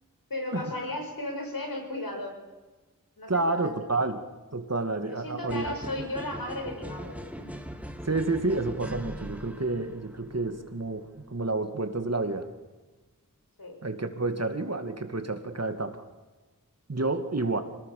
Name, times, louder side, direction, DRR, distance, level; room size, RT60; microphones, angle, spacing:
voice 1, 0.3-2.4 3.2-3.7 5.1-7.6 13.6-13.8, left 1 dB, 90° left, 2 dB, 5.9 m, -35 dB
voice 2, 3.3-4.2 4.5-5.7 8.0-12.5 13.8-16.0 16.9-17.6, right 2 dB, 50° right, 7 dB, 2.5 m, -29 dB
sound 1, 5.5-11.4, equal, 5° right, 2.1 m, -41 dB
25.5 x 19.5 x 6.8 m, 1.2 s
wide cardioid pair, 55°, 34 cm